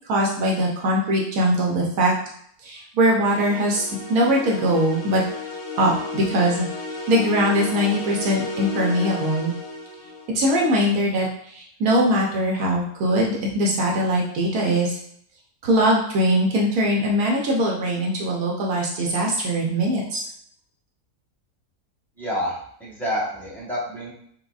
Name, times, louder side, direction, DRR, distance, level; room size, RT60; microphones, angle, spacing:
voice 1, 0.1-2.1 2.6-5.2 5.8-6.7 7.1-9.5 10.3-15.0 15.6-20.3, equal, 80° right, -2 dB, 1.2 m, -21 dB
sound 1, 3.3-10.3, left 4 dB, 65° left, 0.9 m, -33 dB
voice 2, 22.2-24.1, equal, ahead, -8 dB, 0.9 m, -28 dB
5.0 x 2.1 x 2.4 m, 0.66 s
omnidirectional pair, 1.6 m